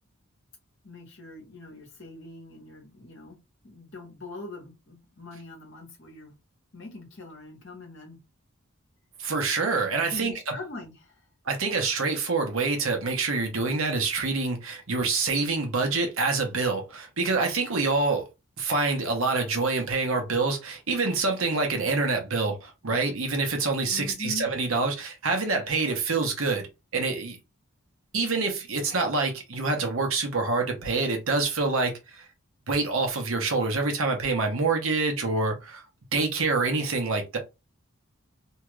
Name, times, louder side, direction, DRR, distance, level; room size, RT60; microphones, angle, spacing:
voice 1, 0.8-3.4 3.6-6.3 6.7-8.2 10.1-11.2 23.9-24.5, left 2 dB, 55° left, 1.2 m, -42 dB
voice 2, 9.2-10.3 11.5-18.3 18.6-26.7 26.9-27.4 28.1-32.3 32.7-35.8 36.1-37.4, right 3 dB, 65° right, 0.9 m, -26 dB
2.8 x 2.4 x 3.1 m
head